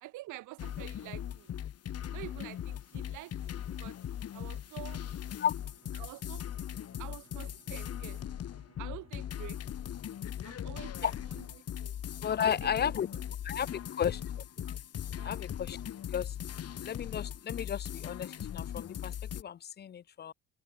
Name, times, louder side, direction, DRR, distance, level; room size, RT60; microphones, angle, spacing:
voice 1, 0.0-1.5 2.1-4.0 4.3-5.0 6.0-6.4 7.0-8.2 8.8-9.6 10.4-11.5 11.8-12.0 12.4-13.2 13.7-13.8 14.1-14.2 15.2-15.4, right 18 dB, 85° right, 0.7 m, -47 dB
sound 1, 0.6-19.4, left 10 dB, 55° left, 1.2 m, -39 dB
Bowed string instrument, 5.6-11.3, right 9 dB, 60° right, 3.4 m, -66 dB
voice 2, 12.2-13.1 13.4-14.2 15.2-15.8 16.1-16.3 16.8-20.3, left 8 dB, 35° left, 0.4 m, -33 dB
open air
cardioid pair, 90°, 30 cm